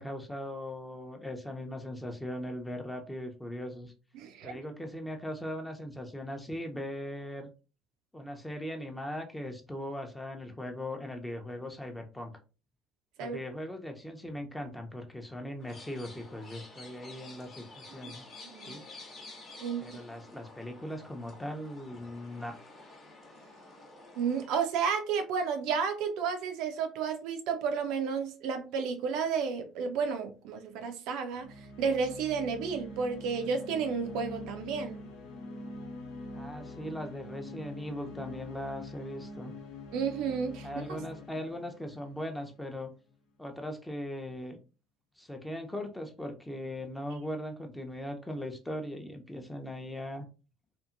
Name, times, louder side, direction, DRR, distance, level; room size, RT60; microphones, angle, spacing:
voice 1, 0.0-3.9 4.4-7.5 8.1-12.3 13.2-18.3 18.7-18.8 19.8-22.5 36.3-39.5 40.6-42.9 43.4-44.6 45.2-50.3, left 1 dB, 10° left, 0.6 m, -39 dB
voice 2, 4.1-4.6 13.2-13.4 18.0-18.1 18.4-18.8 19.6-19.9 24.2-31.5 31.8-35.0 39.9-41.0, right 6 dB, 65° right, 0.4 m, -32 dB
sound 1, 15.6-24.5, left 2 dB, 45° left, 1.0 m, -50 dB
sound 2, 31.3-42.9, left 2 dB, 65° left, 0.5 m, -45 dB
2.7 x 2.4 x 2.4 m
figure-of-eight pair, 55°, 0 cm